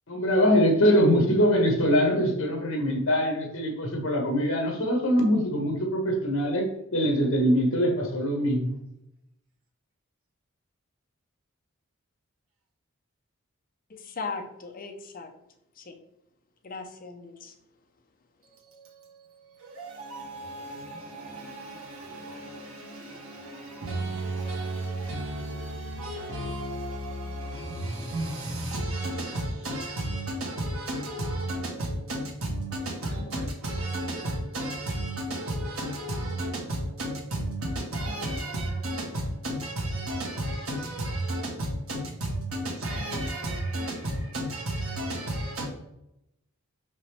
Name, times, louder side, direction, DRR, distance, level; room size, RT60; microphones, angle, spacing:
voice 1, 0.1-6.7 6.9-8.8, equal, 70° left, 1.4 m, -23 dB
voice 2, 13.9-15.3 15.8-16.0 16.6-17.5, left 4 dB, 45° left, 0.7 m, -38 dB
voice 3, 18.6-45.7, right 1 dB, 80° right, 1.7 m, -33 dB
5.2 x 5.2 x 3.4 m
head